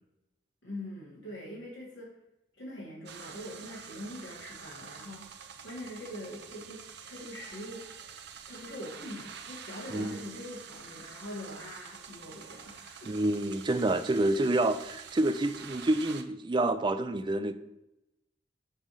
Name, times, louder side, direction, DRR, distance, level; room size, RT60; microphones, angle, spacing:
voice 1, 0.6-2.1 2.6-5.3 5.6-7.9 8.5-13.1, left 1 dB, 75° left, -6 dB, 2.5 m, -43 dB
sound 1, 3.1-16.2, right 7 dB, 60° right, 0.7 m, -47 dB
voice 2, 9.9-10.2 13.1-17.5, right 2 dB, 25° right, 10 dB, 0.4 m, -28 dB
7.3 x 3.5 x 6.3 m, 0.88 s
head